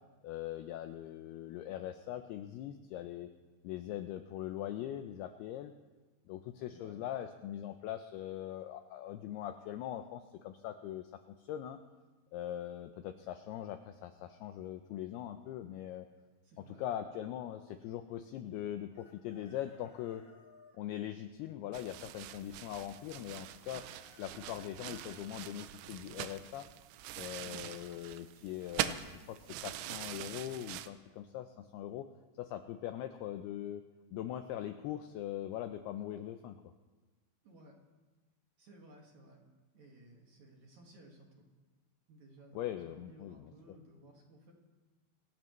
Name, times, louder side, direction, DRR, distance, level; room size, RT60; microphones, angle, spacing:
voice 1, 0.2-3.3 3.6-5.7 6.3-11.8 12.3-16.1 16.8-20.2 20.7-23.9 24.2-26.7 27.2-32.1 32.4-33.8 34.1-36.6 42.5-43.5, left 11 dB, 90° left, 8 dB, 2.3 m, -41 dB
voice 2, 6.7-7.0 16.4-16.9 27.4-27.7 37.4-37.8 38.6-39.4 39.7-41.5 42.1-44.5, right 1 dB, 50° right, -1 dB, 2.6 m, -58 dB
Chicken rooster, 18.9-20.8 23.4-25.2, left 3 dB, 20° left, 3.0 m, -62 dB
sound 1, 21.7-30.9, right 12 dB, 85° right, 3.1 m, -43 dB
27.0 x 14.5 x 3.2 m, 1.2 s
omnidirectional pair, 5.3 m